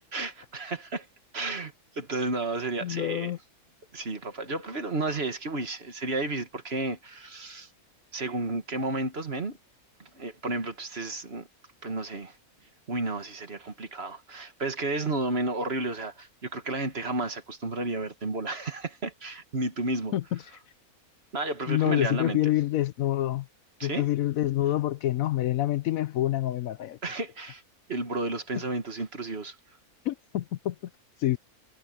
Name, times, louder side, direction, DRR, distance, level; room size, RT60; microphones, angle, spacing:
voice 1, 0.1-1.1 1.3-3.3 3.9-7.7 8.1-9.6 10.0-11.5 11.8-12.4 12.9-20.1 21.3-22.4 23.8-24.1 27.0-27.6 27.9-29.6, right 2 dB, 45° right, 1.9 m, -32 dB
voice 2, 2.8-3.4 20.1-20.4 21.7-23.5 23.8-27.0 30.1-30.8 31.2-31.4, left 14 dB, 75° left, 1.0 m, -27 dB
omnidirectional pair, 1.6 m